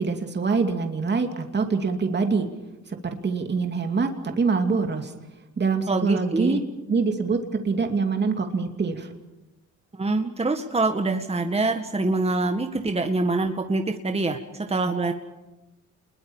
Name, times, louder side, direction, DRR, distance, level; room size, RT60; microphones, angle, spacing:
voice 1, 0.0-2.5 3.0-4.1 4.4-5.1 5.6-6.6 6.9-7.4 7.6-9.1, right 4 dB, 35° right, 4 dB, 2.6 m, -24 dB
voice 2, 5.9-6.6 9.9-15.1, right 2 dB, 20° right, 5 dB, 1.8 m, -25 dB
26.5 x 21.5 x 7.3 m, 1.0 s
cardioid pair, 90°, 30 cm